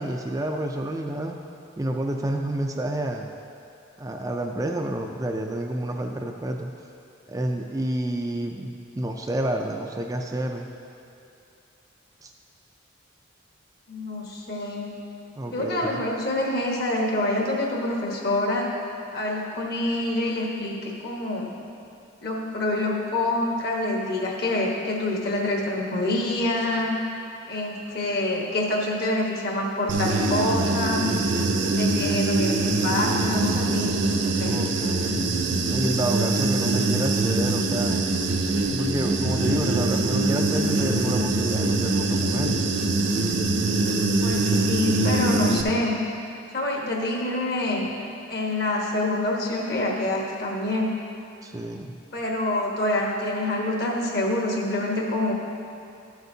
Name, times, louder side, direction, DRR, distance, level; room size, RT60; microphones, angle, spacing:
voice 1, 0.0-1.4 1.8-3.3 4.0-6.7 7.3-10.7 12.2-12.3 15.4-16.0 32.0-32.2 34.4-35.3 35.7-38.0 38.7-42.6 51.4-52.0, right 1 dB, 15° right, 2 dB, 0.3 m, -29 dB
voice 2, 13.9-14.9 15.5-18.7 19.1-21.5 22.2-26.9 27.5-31.1 31.7-33.9 34.2-34.6 44.2-45.9 46.5-47.9 48.3-50.9 52.1-55.3, left 1 dB, 50° left, -1 dB, 1.2 m, -26 dB
Human voice / Buzz, 29.9-45.6, right 2 dB, 65° right, 0.6 m, -23 dB
13.0 x 8.0 x 2.7 m, 2.6 s
head